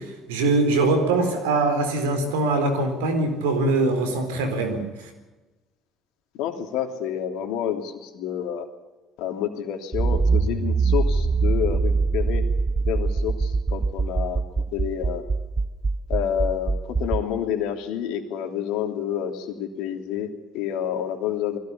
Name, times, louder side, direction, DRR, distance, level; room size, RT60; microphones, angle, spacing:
voice 1, 0.0-5.1, right 2 dB, 85° right, 7 dB, 4.2 m, -23 dB
voice 2, 6.4-8.7 9.2-12.4 12.8-14.4 14.7-15.2 16.1-21.6, left 9 dB, 70° left, 6 dB, 3.0 m, -29 dB
Accelerating revving vroom, 9.9-17.2, right 4 dB, 30° right, 1.5 m, -23 dB
21.0 x 17.0 x 8.6 m, 1.1 s
hypercardioid pair, 60°, 0 cm